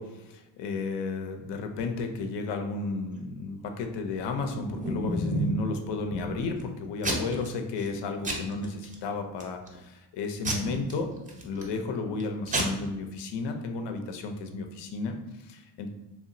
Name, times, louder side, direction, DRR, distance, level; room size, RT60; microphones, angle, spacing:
voice 1, 0.0-11.1 11.4-15.9, left 3 dB, 65° left, 5 dB, 0.5 m, -33 dB
Packing tape duct tape / Tearing, 4.4-5.6 6.1-6.6 7.0-7.5 7.8-8.0 8.2-8.9 9.4-9.8 10.4-11.7 12.2-12.3 12.5-12.6, right 1 dB, 15° right, 0.5 m, -31 dB
2.8 x 2.3 x 2.6 m, 1.0 s
cardioid pair, 95°, 46 cm